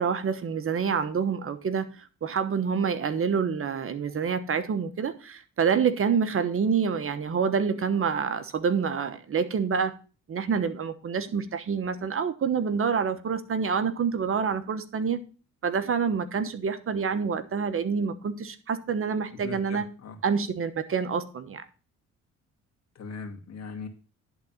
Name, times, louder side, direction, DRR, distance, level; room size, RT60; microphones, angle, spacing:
voice 1, 0.0-9.9 10.3-15.2 15.6-19.9 20.2-21.7, right 6 dB, 45° right, 1.1 m, -27 dB
voice 2, 19.4-20.2 23.0-23.9, left 4 dB, 60° left, 2.2 m, -39 dB
11.0 x 4.0 x 7.2 m
cardioid pair, 90°, 30 cm